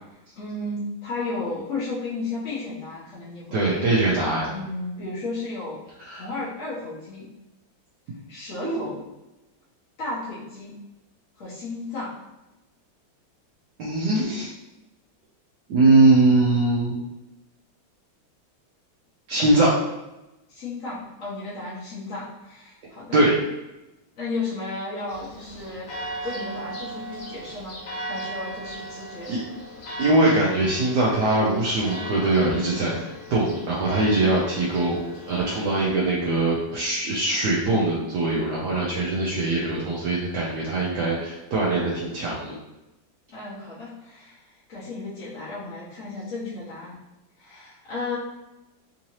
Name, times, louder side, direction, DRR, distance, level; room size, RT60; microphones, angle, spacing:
voice 1, 0.3-3.8 4.5-5.8 6.1-7.3 8.3-9.0 10.0-10.8 11.4-12.1 20.5-23.2 24.2-25.9 26.2-27.8 28.0-29.3 43.3-47.0 47.4-48.2, left 3 dB, 55° left, -9 dB, 1.0 m, -33 dB
voice 2, 3.5-4.5 6.0-6.3 8.6-8.8 13.8-14.5 15.7-17.0 19.3-19.7 23.1-23.3 29.3-29.4 30.0-35.0 35.3-42.6, right 2 dB, 70° right, -5 dB, 1.1 m, -22 dB
Church bell, 25.1-35.8, right 1 dB, 75° left, 1.6 m, -37 dB
3.7 x 2.7 x 3.0 m, 0.97 s
omnidirectional pair, 2.1 m